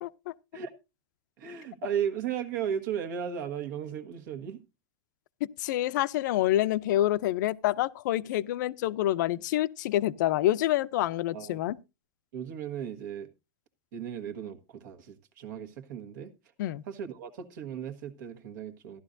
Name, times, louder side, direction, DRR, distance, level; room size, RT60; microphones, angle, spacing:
voice 1, 0.0-0.3 5.6-11.8 16.6-16.8, left 14 dB, 75° left, 0.5 m, -27 dB
voice 2, 1.4-4.6 11.3-11.6 12.3-13.3 13.9-16.3 16.9-19.0, right 8 dB, 75° right, 1.4 m, -35 dB
14.5 x 11.5 x 2.6 m
supercardioid pair, 155°, 10 cm